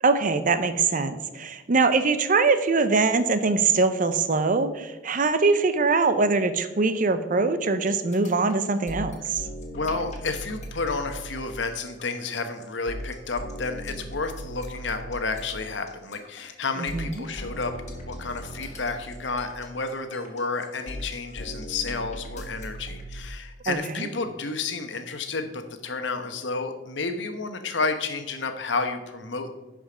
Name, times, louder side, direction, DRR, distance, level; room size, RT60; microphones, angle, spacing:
voice 1, 0.0-9.5 16.9-17.2 23.7-24.1, right 4 dB, 45° right, 11 dB, 0.7 m, -23 dB
sound 1, 7.9-23.2, equal, 40° left, 1.5 m, -38 dB
voice 2, 9.7-17.7 18.0-29.5, left 4 dB, 70° left, 7 dB, 1.0 m, -31 dB
11.0 x 5.1 x 5.0 m, 1.1 s
head